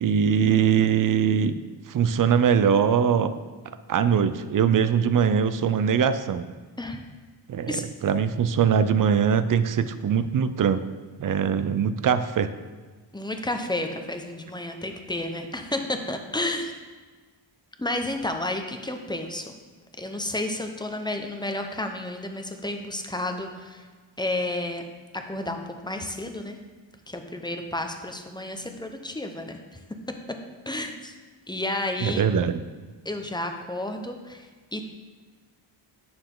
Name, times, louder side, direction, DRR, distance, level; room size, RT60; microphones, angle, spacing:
voice 1, 0.0-1.6 1.9-3.4 3.9-6.5 7.5-10.8 11.2-12.5 32.0-32.6, right 7 dB, 40° right, 12 dB, 0.5 m, -22 dB
voice 2, 13.1-16.7 17.8-19.5 20.0-23.9 24.2-24.8 25.1-26.6 27.1-29.8 30.7-31.1 31.5-32.2 33.0-34.9, left 1 dB, 10° left, 5 dB, 0.8 m, -31 dB
8.8 x 6.9 x 3.8 m, 1.4 s
cardioid pair, 85°, 49 cm